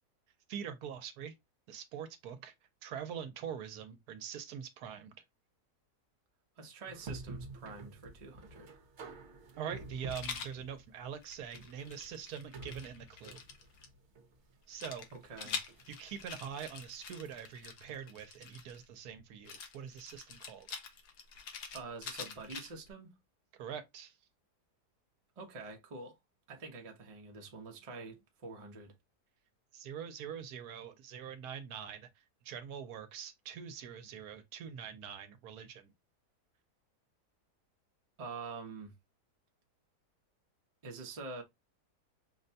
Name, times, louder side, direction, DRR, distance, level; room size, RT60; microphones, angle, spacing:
voice 1, 0.5-1.3 1.7-2.5 2.8-5.1 9.6-13.4 14.7-15.1 15.9-20.7 23.6-24.1 29.7-32.1 32.4-35.9, right 8 dB, 75° right, 1.1 m, -44 dB
voice 2, 6.6-8.8 15.1-15.6 21.7-23.2 25.4-26.2 26.5-28.9 38.2-38.9 40.8-41.4, right 3 dB, 35° right, 0.6 m, -46 dB
sound 1, 6.9-17.7, right 3 dB, 55° right, 1.0 m, -50 dB
Rattle, 10.1-10.6 11.2-13.9 14.8-18.8 19.5-22.9, left 6 dB, 90° left, 1.3 m, -45 dB
5.2 x 2.2 x 2.6 m
omnidirectional pair, 1.7 m